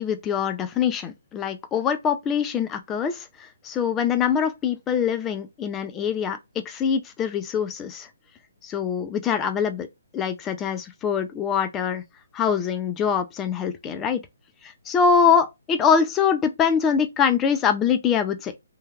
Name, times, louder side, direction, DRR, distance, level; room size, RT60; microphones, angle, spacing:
voice 1, 0.0-3.3 3.6-6.4 6.7-8.1 8.6-9.9 10.1-12.0 12.3-14.2 14.9-18.5, left 7 dB, 15° left, 0.4 m, -23 dB
3.1 x 2.3 x 2.2 m
hypercardioid pair, 160°, 0 cm